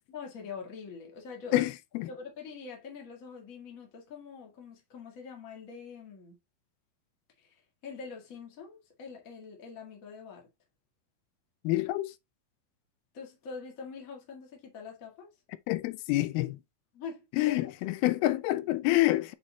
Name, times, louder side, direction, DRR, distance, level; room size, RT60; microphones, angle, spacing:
voice 1, 0.1-1.5 2.1-6.4 7.4-10.5 13.1-15.3 16.9-17.7, left 5 dB, 35° left, 1.5 m, -44 dB
voice 2, 1.5-2.1 11.6-12.1 15.7-16.6 17.4-19.3, left 17 dB, 85° left, 2.5 m, -27 dB
7.9 x 4.2 x 2.8 m
omnidirectional pair, 4.3 m